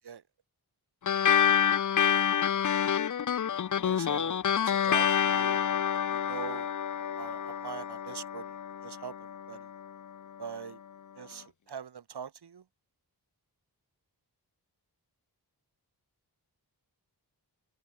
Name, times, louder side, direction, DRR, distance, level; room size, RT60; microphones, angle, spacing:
sound 1, 1.1-9.9, left 8 dB, 50° left, 0.5 m, -28 dB
voice 1, 3.8-5.7 5.9-6.7 7.0-8.5 8.8-9.7 10.4-10.8 11.2-12.6, right 7 dB, 70° right, 1.3 m, -43 dB
wide cardioid pair, 90°, 41 cm